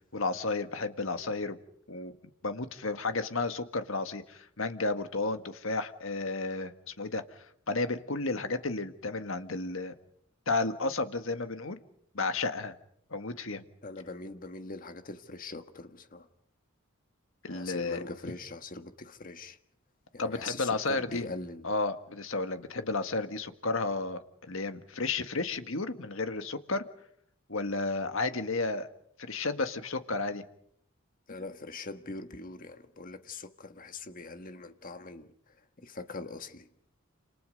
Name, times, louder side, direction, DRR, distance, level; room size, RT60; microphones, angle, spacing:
voice 1, 0.1-1.6 1.9-2.1 2.4-9.9 10.5-11.8 12.1-12.7 13.1-13.6 17.4-18.0 20.2-21.3 21.6-26.8 27.5-28.9 29.2-30.4, left 3 dB, 65° left, 1.8 m, -32 dB
voice 2, 13.8-16.3 17.5-19.6 20.1-21.7 31.3-36.7, left 3 dB, 40° left, 1.5 m, -42 dB
28.5 x 27.5 x 5.3 m
head